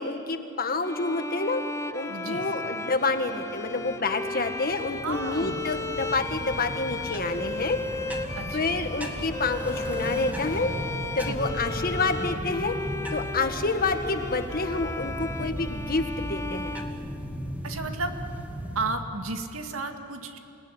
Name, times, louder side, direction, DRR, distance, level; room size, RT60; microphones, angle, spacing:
voice 1, 0.0-1.6 1.9-7.8 8.5-10.7 11.2-12.7 13.1-16.7, left 3 dB, 45° left, 7 dB, 1.7 m, -28 dB
sound 1, 0.8-17.7, left 2 dB, 15° left, 0.7 m, -35 dB
sound 2, 1.9-14.9 15.2-15.3 15.5-15.6 15.8-15.9, left 1 dB, 65° left, 2.7 m, -45 dB
voice 2, 2.1-2.5 5.0-5.7 8.3-8.7 11.3-11.6 17.6-18.1 18.7-20.4, right 3 dB, 70° right, 5 dB, 2.1 m, -33 dB
sound 3, 4.5-18.9, equal, 10° right, 2.4 m, -37 dB
28.0 x 19.5 x 10.0 m, 2.8 s
head